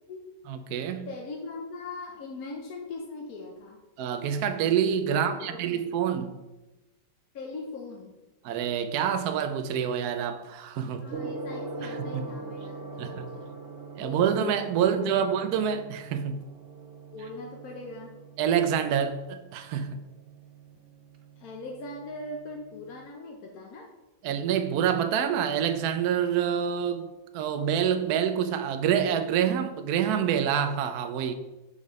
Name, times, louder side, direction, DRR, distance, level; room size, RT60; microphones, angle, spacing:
voice 1, 0.5-1.1 4.0-6.3 8.4-11.1 11.8-12.3 13.0-13.3 14.0-16.4 18.4-20.0 24.2-27.1 27.3-31.3, right 8 dB, 70° right, 8 dB, 1.0 m, -27 dB
voice 2, 1.1-3.8 5.1-5.9 7.3-8.1 11.0-13.5 14.0-14.3 14.8-15.2 17.1-18.2 21.4-23.9, left 3 dB, 60° left, 0 dB, 1.2 m, -40 dB
Gong, 11.1-23.1, right 3 dB, 85° right, 0.5 m, -43 dB
7.0 x 4.9 x 5.2 m, 1.1 s
omnidirectional pair, 2.0 m